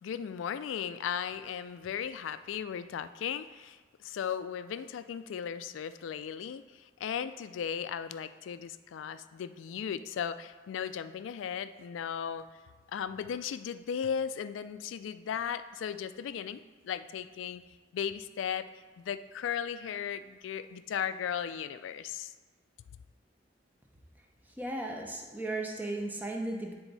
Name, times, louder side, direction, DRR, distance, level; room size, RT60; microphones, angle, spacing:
voice 1, 0.0-12.4 12.9-17.6 17.9-18.7 19.0-22.3, left 8 dB, 85° left, 12 dB, 0.3 m, -36 dB
voice 2, 24.6-26.7, right 2 dB, 10° right, 0 dB, 0.6 m, -35 dB
9.0 x 3.5 x 4.0 m, 1.3 s
head